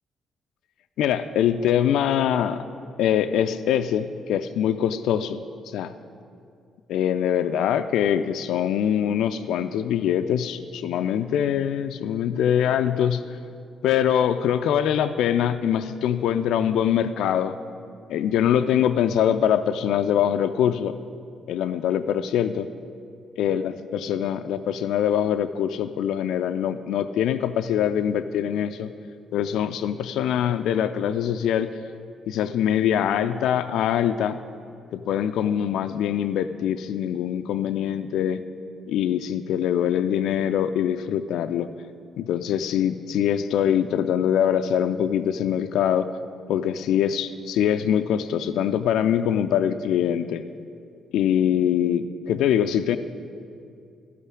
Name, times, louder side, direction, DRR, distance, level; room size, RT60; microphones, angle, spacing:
voice 1, 1.0-2.6 3.0-5.9 6.9-13.2 13.8-17.6 18.1-21.0 21.5-22.7 23.4-28.9 29.3-31.7 32.3-34.4 34.9-38.4 38.9-41.7 42.2-46.1 46.5-50.4 51.1-53.0, left 9 dB, 65° left, 9 dB, 0.4 m, -23 dB
11.0 x 8.3 x 9.6 m, 2.4 s
figure-of-eight pair, 45°, 0 cm